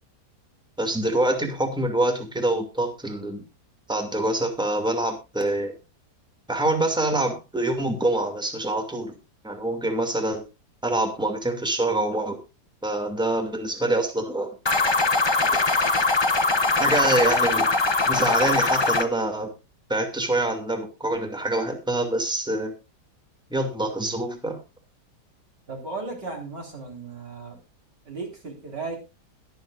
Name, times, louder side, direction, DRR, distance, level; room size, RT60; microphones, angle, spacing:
voice 1, 0.8-3.4 3.9-5.7 6.5-9.1 9.4-10.4 10.8-12.4 12.8-14.5 16.8-17.7 18.1-19.5 19.9-22.7 23.5-24.6, right 1 dB, 5° right, 4 dB, 2.4 m, -25 dB
sound 1, 14.7-19.1, left 3 dB, 20° left, 0.7 m, -21 dB
voice 2, 25.7-27.6 28.1-29.0, right 3 dB, 90° right, 2 dB, 4.7 m, -35 dB
22.0 x 7.8 x 2.5 m, 0.26 s
omnidirectional pair, 1.8 m